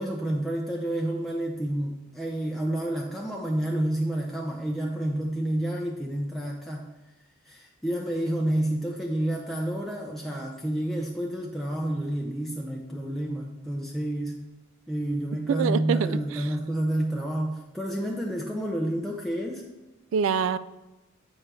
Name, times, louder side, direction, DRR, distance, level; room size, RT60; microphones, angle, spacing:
voice 1, 0.0-6.9 7.4-14.4 14.9-19.7, right 1 dB, ahead, -2 dB, 0.5 m, -29 dB
voice 2, 15.5-16.5 20.1-20.6, right 7 dB, 65° right, 15 dB, 0.3 m, -25 dB
7.9 x 3.2 x 6.0 m, 1.1 s
head